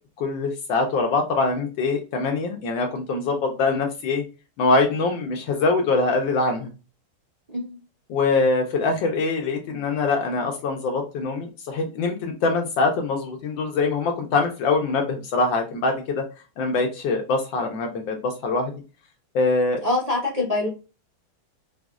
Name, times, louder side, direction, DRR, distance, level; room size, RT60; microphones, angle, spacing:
voice 1, 0.2-4.2 4.6-6.7 8.1-16.2 16.6-18.7 19.3-19.8, left 3 dB, 75° left, 3 dB, 1.2 m, -23 dB
voice 2, 19.8-20.7, left 2 dB, 35° right, -4 dB, 0.6 m, -24 dB
4.9 x 2.0 x 2.3 m, 0.32 s
omnidirectional pair, 2.4 m